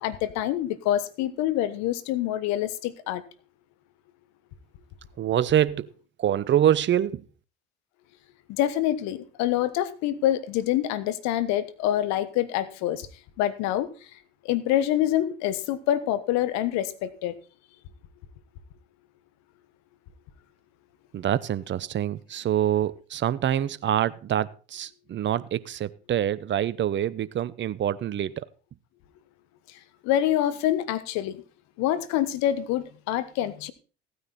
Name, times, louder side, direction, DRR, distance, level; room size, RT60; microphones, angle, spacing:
voice 1, 0.0-3.2 8.5-13.1 13.4-14.1 14.4-17.4 29.7-31.4 31.8-33.7, left 12 dB, 70° left, 1.2 m, -26 dB
voice 2, 5.2-5.9 6.2-7.2 21.1-28.5, right 11 dB, 40° right, 0.8 m, -25 dB
15.0 x 9.6 x 4.2 m
hypercardioid pair, 65°, 29 cm